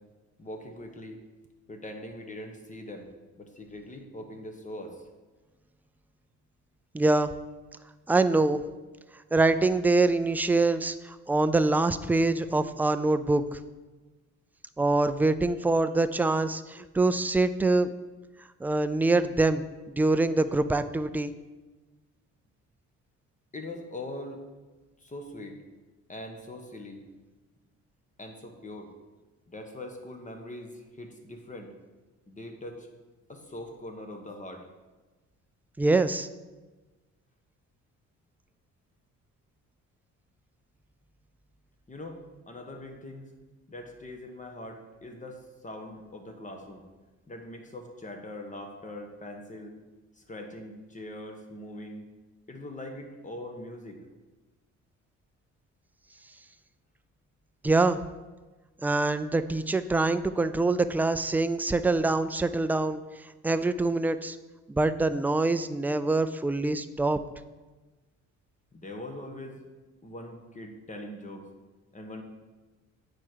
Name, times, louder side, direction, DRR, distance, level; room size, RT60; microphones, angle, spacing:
voice 1, 0.4-1.2 1.7-3.0 3.4-5.0 23.5-24.4 25.0-25.6 26.1-27.0 28.2-28.9 29.5-31.7 32.3-32.9 33.3-34.6 41.9-42.2 42.5-43.3 43.7-46.8 47.3-49.7 50.2-52.1 52.5-54.0 68.7-69.6 70.0-71.5 71.9-72.2, left 1 dB, 25° left, 4 dB, 1.3 m, -42 dB
voice 2, 6.9-7.3 8.1-8.6 9.3-13.6 14.8-17.9 18.6-21.3 35.8-36.3 57.6-58.0 58.8-63.0 63.4-64.4 64.7-67.2, right 2 dB, 5° right, 11 dB, 0.3 m, -25 dB
8.9 x 4.9 x 4.5 m, 1.2 s
cardioid pair, 90°, 30 cm